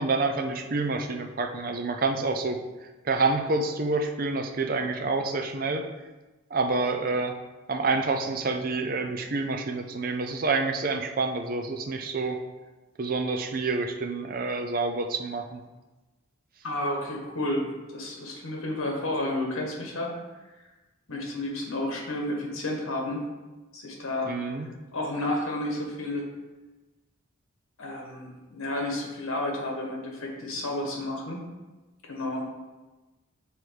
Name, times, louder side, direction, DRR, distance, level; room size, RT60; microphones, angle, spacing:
voice 1, 0.0-2.6 3.0-5.9 6.5-7.3 7.7-12.4 13.0-15.6 24.3-24.7, right 3 dB, 45° right, 4 dB, 0.5 m, -28 dB
voice 2, 16.6-20.2 21.1-23.3 23.7-24.5 24.9-26.3 27.8-31.4 32.0-32.5, left 1 dB, 80° left, 0 dB, 1.3 m, -31 dB
6.2 x 3.5 x 4.6 m, 1.2 s
head